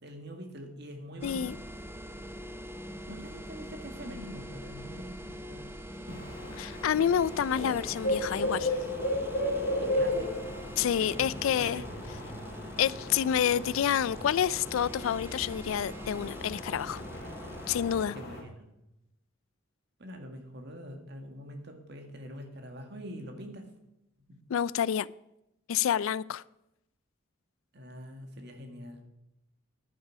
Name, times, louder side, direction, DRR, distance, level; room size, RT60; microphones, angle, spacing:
voice 1, 0.0-1.6 3.1-5.8 6.1-6.2 9.8-10.5 11.0-11.9 18.1-18.7 20.0-23.6 24.3-24.4 27.7-29.0, equal, 55° right, 1.9 m, -44 dB
voice 2, 1.2-1.6 6.6-8.8 10.8-11.8 12.8-17.0 17.7-18.2 24.5-25.1 25.7-26.4, left 9 dB, 80° left, 0.3 m, -28 dB
sound 1, 1.2-18.1, equal, 10° right, 0.7 m, -43 dB
sound 2, 6.1-18.4, left 1 dB, 50° left, 2.9 m, -35 dB
11.0 x 9.7 x 4.7 m
head